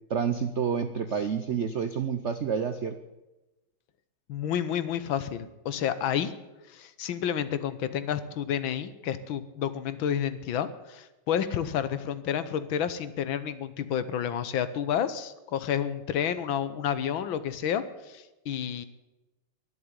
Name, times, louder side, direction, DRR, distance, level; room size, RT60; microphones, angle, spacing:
voice 1, 0.1-3.0, right 6 dB, 90° right, 10 dB, 0.6 m, -29 dB
voice 2, 4.3-6.3 6.7-18.9, left 9 dB, 70° left, 13 dB, 1.6 m, -30 dB
12.0 x 11.0 x 9.8 m, 1.0 s
omnidirectional pair, 2.3 m